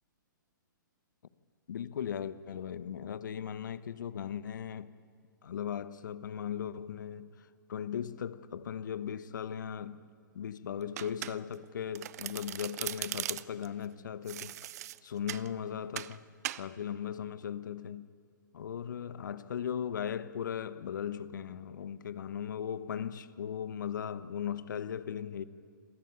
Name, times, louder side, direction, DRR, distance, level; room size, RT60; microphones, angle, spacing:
voice 1, 1.7-4.9 5.4-10.0 10.3-14.6 15.0-16.2 16.5-18.1 18.5-25.4, left 8 dB, 65° left, 1.1 m, -38 dB
Domestic sounds home sounds, 11.0-11.6 11.9-13.7 14.3-15.5 16.0-16.2 16.4-16.7, right 13 dB, 50° right, 0.6 m, -39 dB
26.5 x 15.0 x 8.9 m
figure-of-eight pair, 125°, 11 cm